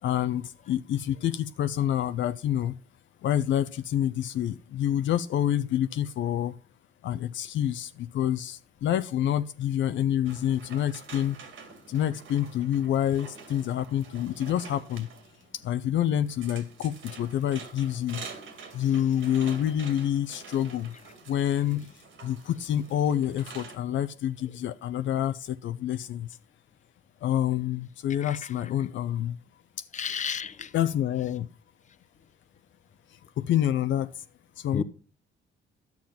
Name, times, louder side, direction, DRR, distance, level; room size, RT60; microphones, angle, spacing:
voice 1, 0.0-2.8 3.2-6.5 7.0-11.4 11.9-15.1 15.6-18.2 18.7-20.9 21.3-21.8 22.2-26.3 27.2-29.3 30.7-31.5 33.4-34.2 34.6-34.8, left 11 dB, 70° left, 0.6 m, -27 dB
sound 1, 10.3-23.8, right 5 dB, 75° right, 2.2 m, -47 dB
voice 2, 29.9-30.7 34.7-34.8, left 6 dB, 40° left, 0.8 m, -32 dB
10.5 x 7.2 x 5.7 m
cardioid pair, 90°, 20 cm